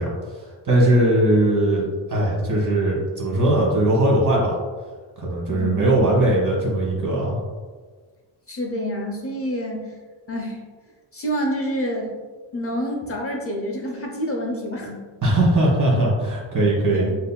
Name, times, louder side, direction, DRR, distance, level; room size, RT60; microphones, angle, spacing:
voice 1, 0.0-4.6 5.2-7.4 15.2-17.1, right 1 dB, 40° right, -4 dB, 1.1 m, -20 dB
voice 2, 5.5-6.1 8.5-9.9 10.3-10.6 11.1-12.1 12.5-15.0 16.9-17.1, equal, 30° left, -1 dB, 0.6 m, -27 dB
7.4 x 2.7 x 2.2 m, 1.5 s
wide cardioid pair, 170°, 47 cm